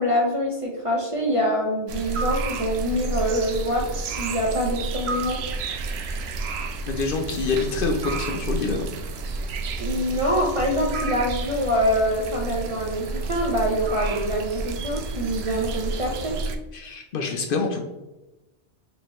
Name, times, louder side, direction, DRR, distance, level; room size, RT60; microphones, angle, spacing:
voice 1, 0.0-5.4 9.8-16.4, equal, 40° right, -2 dB, 0.5 m, -25 dB
sound 1, 1.9-16.6, right 3 dB, 70° right, 0.8 m, -30 dB
voice 2, 6.9-8.9 16.7-17.8, left 4 dB, 60° left, 3 dB, 0.6 m, -26 dB
4.6 x 2.9 x 3.0 m, 1.0 s
omnidirectional pair, 1.2 m